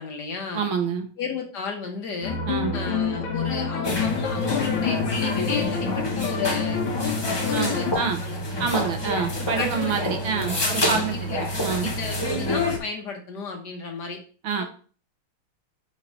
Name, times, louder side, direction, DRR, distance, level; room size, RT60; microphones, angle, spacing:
voice 1, 0.0-0.6 1.2-2.4 2.7-6.8 7.3-8.4 9.3-9.9 10.2-11.4 11.8-14.2 14.6-14.7, left 5 dB, 55° left, 2 dB, 1.5 m, -33 dB
voice 2, 0.5-1.1 2.5-2.8 7.5-8.2 8.6-11.3 11.6-11.9 14.4-14.6, right 6 dB, 70° right, 4 dB, 1.8 m, -27 dB
sound 1, 2.2-7.9, left 6 dB, 75° left, 1.8 m, -27 dB
sound 2, 3.8-12.8, left 1 dB, 30° left, 0.4 m, -27 dB
5.8 x 4.8 x 4.3 m, 0.40 s
omnidirectional pair, 2.3 m